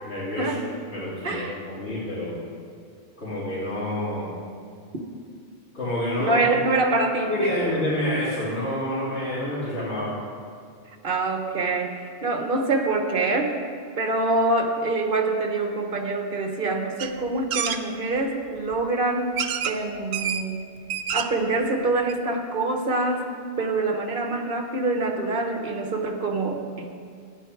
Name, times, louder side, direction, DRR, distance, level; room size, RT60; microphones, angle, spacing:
voice 1, 0.0-0.5 0.9-2.4 3.2-4.3 5.7-6.5 7.3-10.1, left 1 dB, 80° left, -12 dB, 3.2 m, -28 dB
voice 2, 1.2-1.6 6.2-7.5 11.0-13.5 14.0-19.4 19.6-20.7 21.1-26.9, right 2 dB, 55° right, 4 dB, 1.3 m, -25 dB
sound 1, 17.0-17.1 17.5-17.8 18.7-18.8 19.4-19.8 20.1-20.4 20.8-21.4 21.8-21.9 22.1-22.2, right 8 dB, 80° right, 0.9 m, -27 dB
13.0 x 9.6 x 4.6 m, 2.3 s
omnidirectional pair, 1.1 m